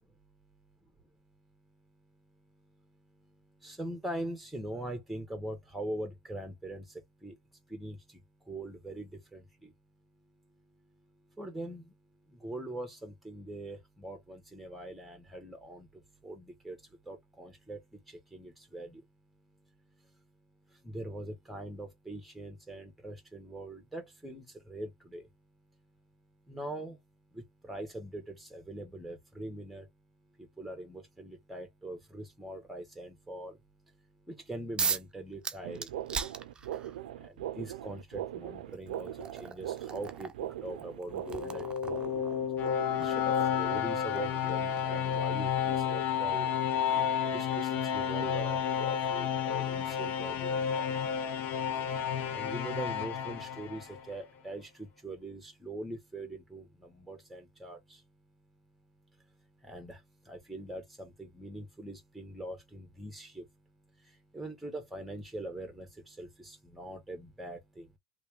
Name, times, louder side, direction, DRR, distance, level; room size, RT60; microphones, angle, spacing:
voice 1, 1.2-9.7 10.5-12.0 12.3-20.3 20.6-25.3 26.5-27.0 27.3-29.9 30.2-36.0 36.3-67.9, right 1 dB, ahead, 1.4 m, -43 dB
sound 1, 34.8-35.1 35.4-37.0 38.1-38.2 38.7-45.4, right 5 dB, 20° right, 0.6 m, -39 dB
sound 2, 35.6-48.4 48.7-49.0 49.4-49.7 50.2-50.4 50.9-51.0 51.7-51.8, right 12 dB, 85° right, 0.4 m, -42 dB
sound 3, 41.1-54.1, left 8 dB, 40° left, 1.1 m, -31 dB
3.1 x 3.0 x 3.3 m
supercardioid pair, 120°, 4 cm